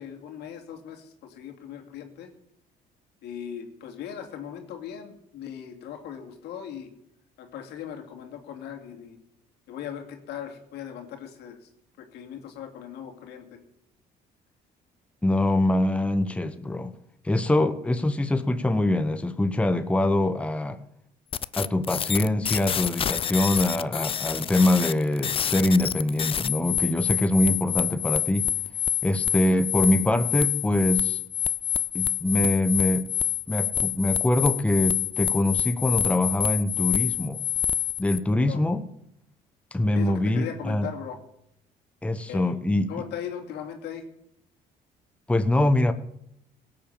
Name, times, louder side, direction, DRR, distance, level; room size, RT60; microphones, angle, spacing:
voice 1, 0.0-2.3 3.2-6.9 7.4-9.2 9.7-11.7 12.0-13.6 38.5-38.6 39.9-41.2 42.3-42.5 42.9-44.0, left 9 dB, 80° left, 3 dB, 2.5 m, -38 dB
voice 2, 15.2-16.9 17.2-20.8 21.6-28.5 29.0-31.2 31.9-33.1 33.5-37.4 38.0-38.8 39.7-40.9 42.0-42.9 45.3-45.9, left 1 dB, 5° left, 10 dB, 0.9 m, -24 dB
sound 1, 21.3-38.2, left 9 dB, 35° left, 0.4 m, -27 dB
17.0 x 7.7 x 7.2 m, 0.78 s
cardioid pair, 110°, 17 cm